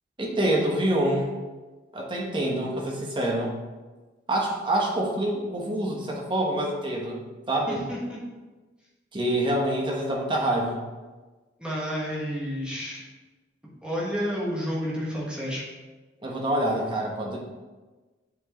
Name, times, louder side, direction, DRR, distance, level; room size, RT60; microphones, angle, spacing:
voice 1, 0.2-1.4 1.9-3.6 4.3-7.8 9.1-10.8 16.2-17.4, right 1 dB, 25° right, -2 dB, 1.1 m, -26 dB
voice 2, 7.7-8.2 11.6-13.0 13.8-15.6, equal, 5° right, -6 dB, 1.2 m, -30 dB
8.5 x 4.5 x 3.1 m, 1.2 s
head